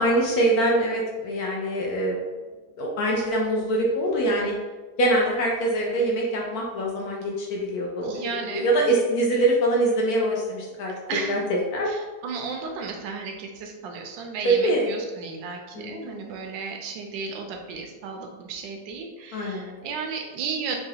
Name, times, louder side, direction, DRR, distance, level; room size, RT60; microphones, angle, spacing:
voice 1, 0.0-2.2 2.8-4.5 5.0-8.1 8.5-10.9 11.3-11.9 14.4-14.9 15.7-16.1 19.3-19.9, right 1 dB, 70° left, -2 dB, 0.9 m, -24 dB
voice 2, 8.0-8.9 11.1-11.4 11.9-20.8, right 5 dB, 80° right, 3 dB, 1.3 m, -34 dB
4.7 x 2.4 x 2.7 m, 1.3 s
omnidirectional pair, 2.0 m